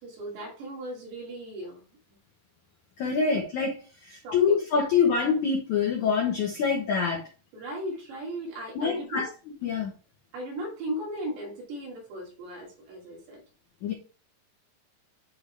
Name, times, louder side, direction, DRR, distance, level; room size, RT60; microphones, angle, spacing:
voice 1, 0.0-1.8 3.1-3.3 4.2-4.6 7.5-9.2 10.3-13.4, right 1 dB, 70° right, -2 dB, 4.7 m, -37 dB
voice 2, 3.0-3.7 4.0-7.2 8.7-9.3 9.6-9.9 13.8-13.9, left 6 dB, 85° left, 1 dB, 1.7 m, -25 dB
10.5 x 3.7 x 3.4 m, 0.36 s
omnidirectional pair, 5.3 m